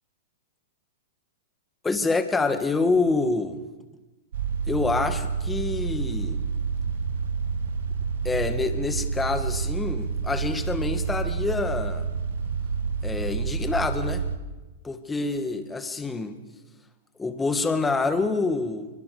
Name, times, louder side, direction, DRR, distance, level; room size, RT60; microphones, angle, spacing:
voice 1, 1.8-3.6 4.7-6.4 8.2-12.0 13.0-14.2 14.8-16.4 17.2-18.9, left 3 dB, 10° left, 9 dB, 2.1 m, -26 dB
sound 1, 4.3-14.4, right 5 dB, 75° right, 1.9 m, -29 dB
23.5 x 23.0 x 7.2 m, 1.2 s
hypercardioid pair, 125°, 0 cm